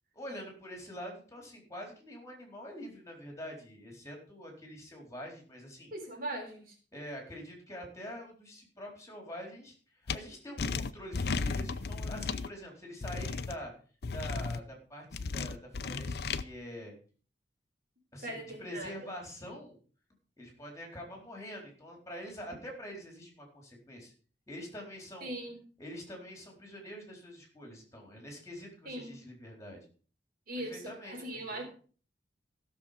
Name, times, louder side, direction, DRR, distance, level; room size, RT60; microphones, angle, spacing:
voice 1, 0.1-5.9 6.9-13.7 14.1-16.1 16.4-16.9 18.1-19.8 20.4-24.1 24.5-25.3 25.8-29.8 30.6-31.2, equal, 20° left, 1 dB, 4.1 m, -45 dB
voice 2, 5.9-6.8 18.2-19.1 25.2-25.6 28.9-29.2 30.5-31.6, right 1 dB, 55° right, 2 dB, 3.7 m, -40 dB
sound 1, 10.1-10.2 10.6-12.5 13.0-13.5 14.0-14.6 15.1-16.4, left 4 dB, 60° left, 0.7 m, -34 dB
16.0 x 7.0 x 5.1 m, 0.41 s
head